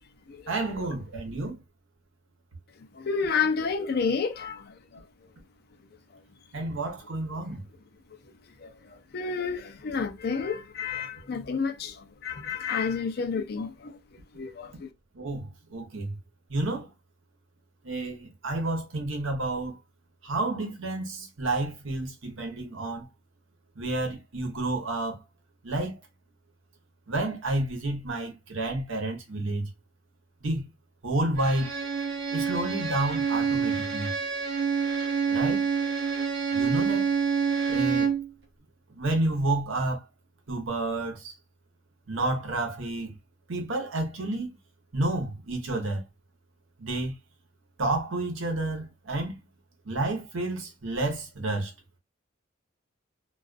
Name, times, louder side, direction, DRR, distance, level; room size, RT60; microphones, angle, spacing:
voice 1, 0.5-1.6 6.5-7.6 15.1-16.2 16.5-16.9 17.8-19.8 20.2-23.1 23.8-25.2 25.6-26.0 27.1-29.7 30.4-30.6 31.0-31.7 32.3-34.1 35.3-35.7 36.5-37.1 37.7-38.1 39.0-40.0 40.5-41.3 42.1-43.1 43.5-44.5 44.9-46.0 46.8-47.1 47.8-49.4 49.8-51.7, right 2 dB, 85° right, 0.9 m, -30 dB
voice 2, 2.9-4.7 8.6-14.0 14.3-14.9, left 5 dB, 50° left, 0.4 m, -30 dB
Bowed string instrument, 31.4-38.3, right 6 dB, 60° right, 0.8 m, -27 dB
2.3 x 2.3 x 2.4 m
head